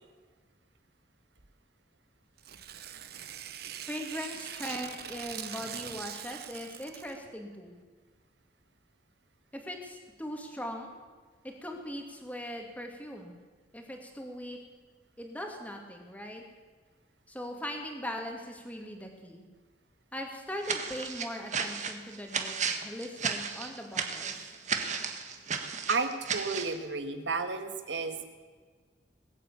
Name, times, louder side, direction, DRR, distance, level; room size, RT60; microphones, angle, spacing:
Tearing, 2.4-7.2, right 9 dB, 60° right, 1.0 m, -42 dB
voice 1, 3.9-7.8 9.5-10.9 11.4-13.4 13.7-14.6 15.2-16.4 17.3-19.5 20.1-24.5, equal, 10° left, 2 dB, 2.3 m, -40 dB
sound 1, 20.6-26.8, right 6 dB, 40° right, 1.4 m, -34 dB
voice 2, 25.9-28.3, right 4 dB, 80° right, 8 dB, 1.6 m, -32 dB
20.5 x 8.4 x 8.4 m, 1.5 s
head